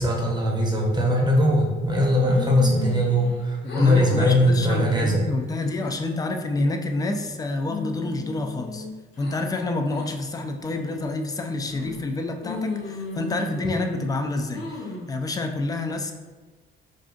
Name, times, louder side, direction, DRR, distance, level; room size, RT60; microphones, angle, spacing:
voice 1, 0.0-5.2, left 1 dB, 20° right, -2 dB, 0.7 m, -20 dB
sound 1, 2.2-3.4 3.6-4.2 4.6-4.9 5.4-6.0 6.5-7.3 7.6-9.4 9.9-10.1 10.6-11.1 11.7-12.1 12.4-14.0 14.5-15.1, left 2 dB, 60° left, 1.0 m, -36 dB
voice 2, 3.6-8.9 9.2-16.1, left 2 dB, 20° left, 4 dB, 0.3 m, -28 dB
2.5 x 2.4 x 3.7 m, 1.3 s
cardioid pair, 90°, 20 cm